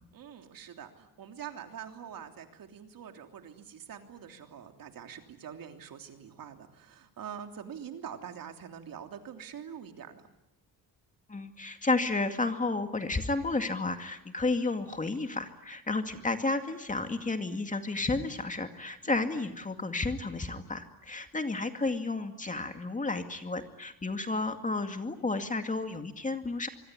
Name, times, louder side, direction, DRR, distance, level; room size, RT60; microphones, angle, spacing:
voice 1, 0.1-10.3 19.0-19.4, right 8 dB, 60° right, 5 dB, 3.3 m, -45 dB
voice 2, 11.3-26.7, left 3 dB, 20° left, 6 dB, 2.2 m, -32 dB
25.0 x 24.5 x 9.8 m, 0.88 s
cardioid pair, 125°, 38 cm